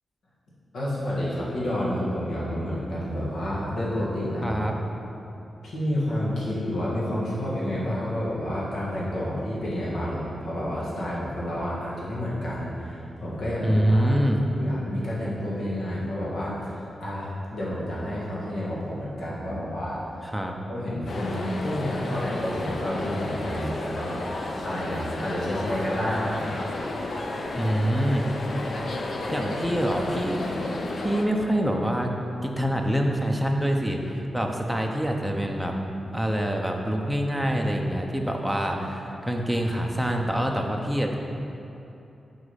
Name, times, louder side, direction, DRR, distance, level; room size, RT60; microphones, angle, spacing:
voice 1, 0.7-4.6 5.6-14.1 14.5-20.0 20.7-24.2 24.6-26.6, equal, 80° left, -7 dB, 1.7 m, -30 dB
voice 2, 4.4-4.7 13.6-14.4 20.2-20.5 27.5-28.2 29.3-30.5 31.0-32.1 32.4-35.7 36.1-41.2, equal, ahead, 1 dB, 0.5 m, -25 dB
sound 1, 21.1-31.2, left 2 dB, 50° left, 0.6 m, -32 dB
6.5 x 5.0 x 5.6 m, 2.8 s
wide cardioid pair, 165°, 0 cm